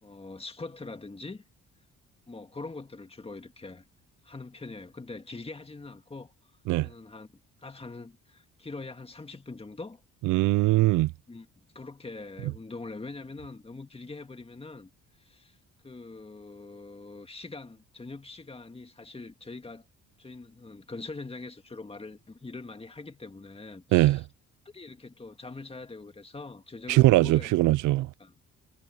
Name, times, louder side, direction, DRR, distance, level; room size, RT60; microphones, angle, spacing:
voice 1, 0.0-1.4 2.3-3.8 4.2-6.3 6.8-7.3 7.6-10.0 11.3-11.5 11.7-14.9 15.2-15.6 15.8-19.8 20.2-24.2 24.7-27.5 27.9-28.5, left 3 dB, 20° left, 2.0 m, -43 dB
voice 2, 10.2-11.1 23.9-24.2 26.9-28.1, right 18 dB, 85° right, 0.5 m, -21 dB
cardioid pair, 90°, 30 cm